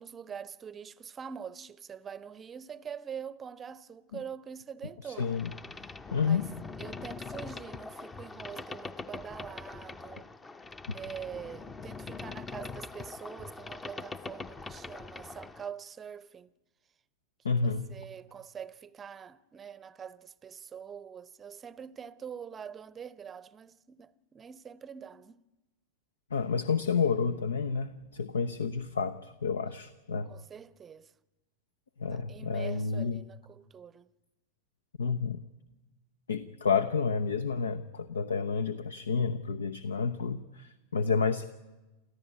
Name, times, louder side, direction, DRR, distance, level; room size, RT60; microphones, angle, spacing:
voice 1, 0.0-5.3 5.7-6.4 6.8-10.3 10.9-16.5 17.5-25.4 30.3-31.1 32.1-34.1, right 7 dB, 20° right, 0.7 m, -44 dB
voice 2, 5.0-5.5 6.1-6.5 17.4-17.9 26.3-30.3 32.0-33.2 35.0-35.4 36.3-41.4, left 5 dB, 70° left, 0.8 m, -30 dB
Boat Water vehicle, 5.2-15.7, left 4 dB, 15° left, 0.8 m, -43 dB
29.0 x 14.5 x 9.5 m
figure-of-eight pair, 90°, 0 cm